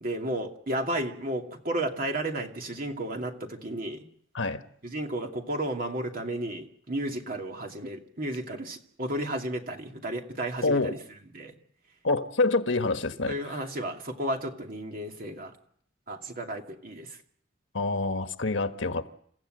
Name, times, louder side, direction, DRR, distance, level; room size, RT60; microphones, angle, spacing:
voice 1, 0.0-4.0 4.8-11.0 11.3-11.5 13.3-15.5 16.1-17.1, right 1 dB, 50° right, 2.5 m, -33 dB
voice 2, 10.6-11.0 12.0-13.3 17.7-19.1, left 3 dB, 85° left, 1.4 m, -26 dB
28.5 x 15.5 x 7.8 m
head